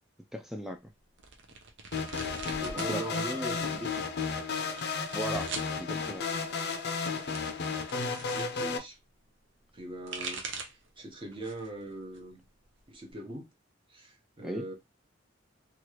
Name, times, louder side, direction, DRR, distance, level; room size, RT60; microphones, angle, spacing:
voice 1, 0.3-0.8 2.7-3.0 5.1-6.2 14.4-14.6, equal, ahead, 0.3 m, -37 dB
sound 1, 1.2-2.9 3.3-3.9 4.6-5.7 6.8-8.5 9.8-10.9 11.3-11.8 12.1-13.1, right 4 dB, 70° right, 0.6 m, -42 dB
sound 2, 1.9-8.8, left 4 dB, 60° left, 0.5 m, -33 dB
voice 2, 2.5-4.0 8.3-9.0 9.7-10.5 10.9-12.4 12.9-13.5 13.9-14.7, right 1 dB, 30° right, 0.9 m, -40 dB
3.0 x 2.4 x 3.0 m
head